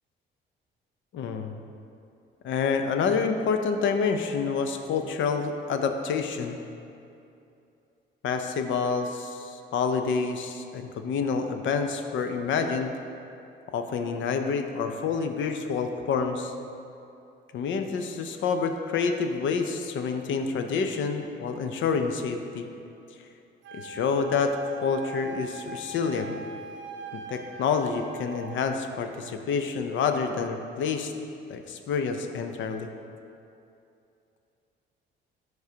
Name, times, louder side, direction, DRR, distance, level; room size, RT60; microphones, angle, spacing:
voice 1, 1.1-1.5 2.4-6.6 8.2-12.9 13.7-16.5 17.5-22.7 23.7-24.6 24.8-26.4 27.1-31.1 31.5-32.9, left 5 dB, 70° left, 6 dB, 0.6 m, -28 dB
Wind instrument woodwind instrument, 23.6-28.6, right 4 dB, 70° right, 0.5 m, -41 dB
11.5 x 4.7 x 2.8 m, 2.7 s
cardioid pair, 90°, 20 cm